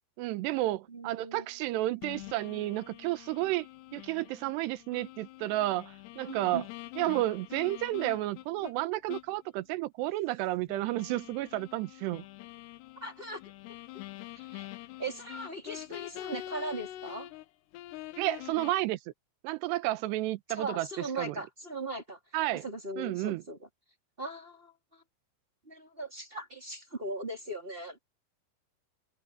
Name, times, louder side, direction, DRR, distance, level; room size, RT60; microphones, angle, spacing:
voice 1, 0.2-3.7 3.9-6.6 7.0-12.2 18.2-19.0 19.4-21.4 22.3-22.6 23.0-23.4, right 17 dB, 85° right, 3.0 m, -31 dB
voice 2, 0.9-1.4 2.5-2.9 6.2-6.6 13.0-13.4 14.3-14.7 15.0-17.3 20.5-22.2 22.6-23.6 24.2-24.7 25.7-28.0, right 2 dB, 15° right, 3.2 m, -39 dB
sound 1, 2.0-8.7 9.1-9.4 9.7-9.8 10.7-17.5 17.7-18.7, left 15 dB, 80° left, 3.1 m, -45 dB
omnidirectional pair, 4.9 m